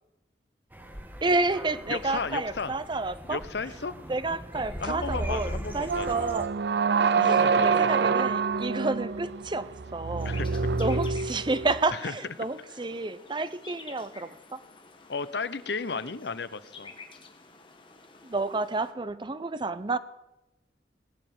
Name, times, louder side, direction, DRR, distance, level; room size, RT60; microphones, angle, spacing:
sound 1, 0.7-6.5, right 1 dB, 10° right, 1.4 m, -39 dB
voice 1, 1.2-3.4 4.1-6.5 7.2-7.3 7.6-10.3 10.8-14.6 18.2-20.0, right 3 dB, 25° right, 14 dB, 0.7 m, -30 dB
voice 2, 1.9-2.7 3.2-3.9 4.8-6.3 7.1-7.9 10.2-10.7 11.9-12.1 15.1-16.9, left 4 dB, 75° left, 15 dB, 0.8 m, -34 dB
sound 2, 5.9-11.9, right 5 dB, 70° right, 0.5 m, -26 dB
sound 3, 10.2-18.9, left 4 dB, 30° left, 1.8 m, -50 dB
19.0 x 7.8 x 9.3 m, 0.97 s
head